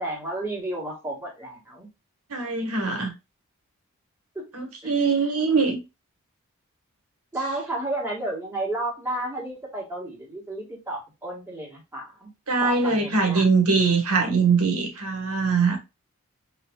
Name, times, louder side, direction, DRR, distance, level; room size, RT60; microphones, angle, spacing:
voice 1, 0.0-1.9 4.4-4.5 4.8-4.9 7.3-12.3 12.5-13.5, right 1 dB, 10° right, 1.9 m, -32 dB
voice 2, 2.3-3.1 4.5-5.8 12.5-15.8, right 4 dB, 85° right, 1.6 m, -22 dB
5.2 x 3.4 x 2.4 m
head